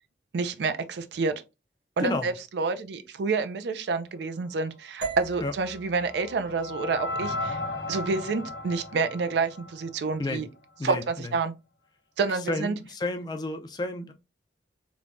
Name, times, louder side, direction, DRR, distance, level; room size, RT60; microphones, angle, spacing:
voice 1, 0.3-1.4 2.0-7.6 7.9-10.5 10.8-11.5 12.2-12.8, right 4 dB, 70° right, 0.4 m, -28 dB
sound 1, 5.0-9.1, right 4 dB, 50° right, 0.9 m, -42 dB
sound 2, 5.2-10.4, left 2 dB, 90° left, 0.7 m, -36 dB
voice 2, 10.8-11.3 12.5-14.1, left 2 dB, 25° left, 0.3 m, -31 dB
3.2 x 2.1 x 2.4 m
head